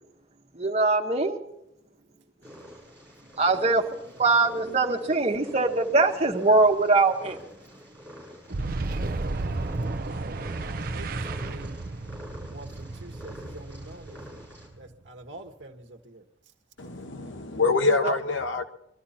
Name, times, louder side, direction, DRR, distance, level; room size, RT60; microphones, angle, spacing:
voice 1, 0.5-1.4 3.4-7.4 17.8-18.2, right 3 dB, 35° right, 1.6 m, -22 dB
Purr, 2.4-14.7, equal, 10° left, 6.5 m, -47 dB
Boom, 8.5-15.1, right 2 dB, 50° right, 0.7 m, -33 dB
voice 2, 10.6-11.8 12.5-14.4 14.8-16.2, right 2 dB, 75° right, 1.3 m, -45 dB
voice 3, 16.8-18.6, left 3 dB, 90° left, 1.3 m, -25 dB
22.5 x 13.0 x 4.3 m
head